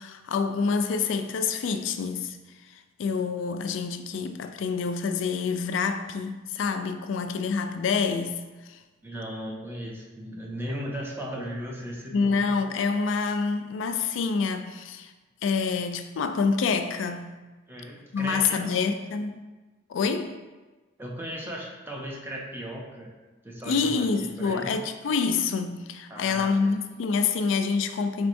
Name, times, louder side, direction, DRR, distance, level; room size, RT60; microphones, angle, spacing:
voice 1, 0.0-2.4 2.6-8.8 12.1-15.1 15.4-17.3 18.1-19.4 19.9-20.4 23.6-28.3, left 5 dB, 70° left, 0.4 m, -27 dB
voice 2, 9.0-12.6 17.7-18.8 21.0-23.1 23.4-24.7 26.1-26.7, equal, 10° right, 0.7 m, -36 dB
4.5 x 4.2 x 2.6 m
head